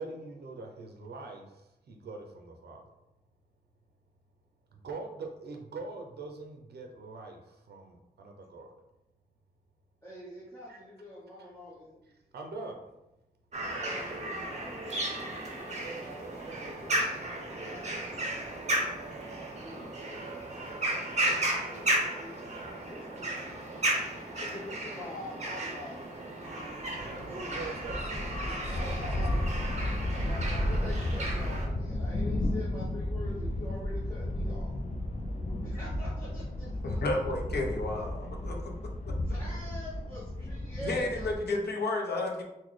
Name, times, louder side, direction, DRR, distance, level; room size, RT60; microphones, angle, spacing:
voice 1, 0.0-1.5 1.9-2.8 4.7-8.7 10.7-10.8 11.4-11.5 12.3-12.8 27.0-29.3, right 3 dB, 85° right, 2 dB, 0.5 m, -43 dB
voice 2, 10.0-11.9 13.8-18.8 19.6-23.5 24.4-26.0 26.3-27.9 28.2-29.4 30.1-34.7 35.6-37.0 39.2-41.3, left 1 dB, 15° left, -10 dB, 0.8 m, -45 dB
sound 1, 13.5-31.7, right 1 dB, 45° right, 0.6 m, -34 dB
sound 2, 26.8-41.4, left 1 dB, 45° left, 0.4 m, -33 dB
voice 3, 36.8-38.7 40.8-42.4, left 2 dB, 85° left, 2 dB, 0.6 m, -32 dB
3.8 x 2.2 x 3.1 m, 0.91 s
wide cardioid pair, 135°, 16 cm